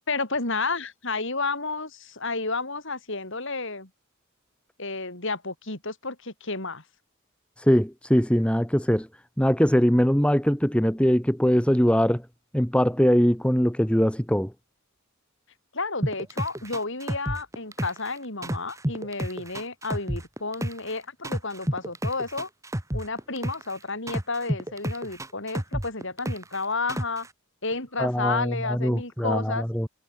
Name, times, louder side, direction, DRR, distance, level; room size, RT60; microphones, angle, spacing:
voice 1, 0.1-3.9 4.8-6.8 15.7-22.5 22.9-27.3 27.6-29.6, left 3 dB, 60° left, 5.1 m, -31 dB
voice 2, 7.6-9.1 9.4-12.2 12.5-14.5 28.0-29.9, equal, 5° left, 1.9 m, -22 dB
sound 1, 16.0-18.1 18.4-20.9 21.2-23.7 24.1-26.6 26.9-27.3, right 1 dB, 15° right, 1.8 m, -30 dB
head